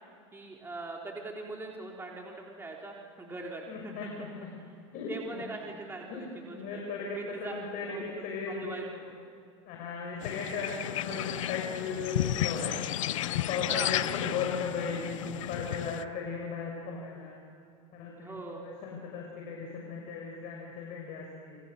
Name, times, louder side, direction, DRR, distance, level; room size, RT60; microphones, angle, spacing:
voice 1, 0.3-4.5 5.1-6.8 7.2-7.5 7.8-8.1 8.5-9.2 13.6-14.1 18.2-18.7, right 2 dB, 15° right, -1 dB, 3.7 m, -42 dB
voice 2, 3.7-4.5 4.9-5.4 6.1-8.8 9.7-12.7 13.2-17.4 17.9-21.6, left 5 dB, 55° left, 0 dB, 6.0 m, -37 dB
sound 1, 10.2-16.0, left 13 dB, 80° left, 0.8 m, -33 dB
29.0 x 25.0 x 6.7 m, 2.4 s
hypercardioid pair, 100°, 16 cm